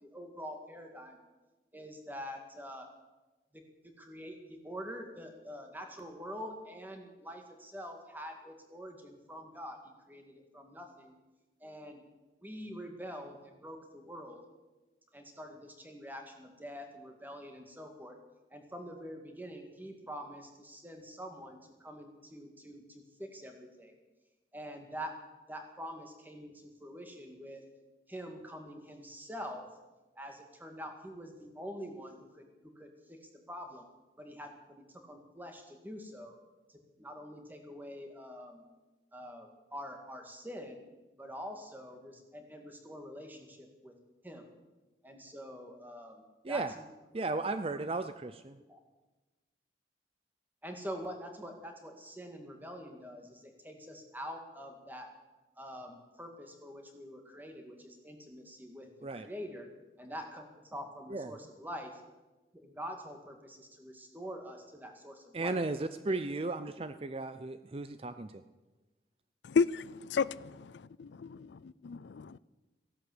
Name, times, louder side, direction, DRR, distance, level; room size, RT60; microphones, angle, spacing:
voice 1, 0.0-1.2 1.7-2.9 3.5-9.8 10.1-11.1 11.6-12.0 12.4-14.4 15.1-18.1 18.5-24.0 24.5-25.1 25.5-27.6 28.1-29.6 30.2-32.5 32.8-33.8 34.2-36.4 36.7-38.6 39.1-40.9 41.2-43.9 44.2-44.5 45.0-46.2 46.5-46.6 48.7-48.8 50.6-55.1 55.6-59.7 60.0-60.4 60.7-62.0 62.5-65.6 66.1-66.2, equal, 10° right, 2.1 m, -45 dB
voice 2, 47.1-48.6 59.0-59.3 61.1-61.3 65.3-68.4, right 3 dB, 35° right, 0.5 m, -35 dB
voice 3, 69.4-70.7 71.9-72.4, left 5 dB, 85° left, 0.4 m, -30 dB
15.5 x 11.5 x 7.9 m
head